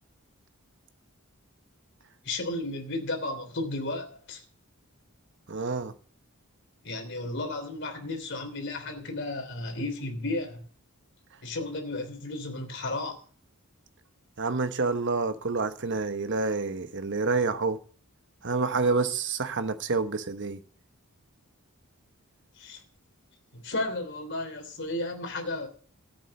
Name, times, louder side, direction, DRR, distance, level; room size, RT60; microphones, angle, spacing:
voice 1, 2.2-4.4 6.8-10.6 11.4-13.2 22.6-22.8 23.5-25.7, left 2 dB, 55° left, 3.2 m, -33 dB
voice 2, 5.5-5.9 14.4-17.8 18.4-20.6, right 4 dB, 55° right, 1.2 m, -28 dB
13.5 x 8.6 x 6.5 m
head